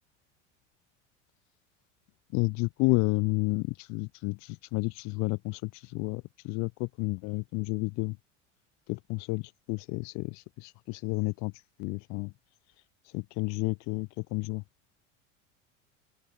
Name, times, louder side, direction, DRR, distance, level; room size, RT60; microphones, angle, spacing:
voice 1, 2.3-8.2 8.9-9.4 9.7-11.5 11.8-12.3 13.1-14.6, left 28 dB, 50° left, 0.7 m, -31 dB
open air
hypercardioid pair, 80°, 37 cm